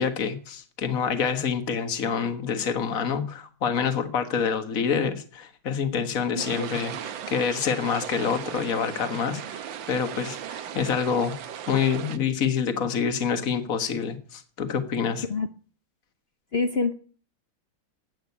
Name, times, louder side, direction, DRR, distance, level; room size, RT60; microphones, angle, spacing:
voice 1, 0.0-11.3 11.7-15.3, left 6 dB, 45° left, 8 dB, 1.9 m, -27 dB
sound 1, 6.4-12.2, right 9 dB, 70° right, 1.7 m, -37 dB
voice 2, 16.5-16.9, left 4 dB, 65° left, 9 dB, 0.6 m, -25 dB
13.0 x 9.0 x 9.7 m, 0.43 s
omnidirectional pair, 2.2 m